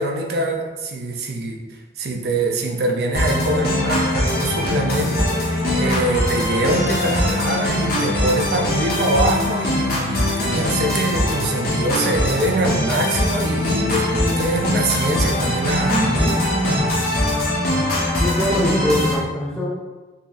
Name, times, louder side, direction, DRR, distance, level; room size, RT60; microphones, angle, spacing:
voice 1, 0.0-1.6 2.0-16.2 16.6-16.9, right 2 dB, 60° right, 2 dB, 0.4 m, -23 dB
sound 1, 3.1-19.1, left 1 dB, 55° left, 0.9 m, -21 dB
voice 2, 16.0-16.4 18.2-19.7, left 1 dB, 5° left, -7 dB, 0.6 m, -23 dB
3.9 x 2.7 x 2.4 m, 1.2 s
head